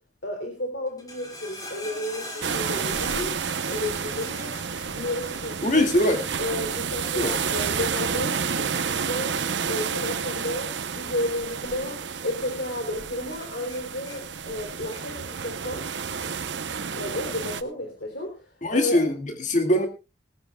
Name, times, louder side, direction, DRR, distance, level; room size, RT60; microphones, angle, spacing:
voice 1, 0.2-3.3 3.7-4.6 4.9-5.9 6.4-15.9 16.9-19.0, left 1 dB, 75° left, 3 dB, 3.4 m, -32 dB
sound 1, 0.9-12.2 12.5-13.0 13.3-15.3 15.6-16.4 17.1-17.2, left 1 dB, 20° left, 3.6 m, -44 dB
sound 2, 2.4-17.6, right 6 dB, 85° right, 0.9 m, -30 dB
voice 2, 5.6-6.2 7.1-7.3 18.6-19.9, left 1 dB, 40° left, 5 dB, 2.2 m, -22 dB
21.0 x 14.5 x 2.3 m, 0.28 s
head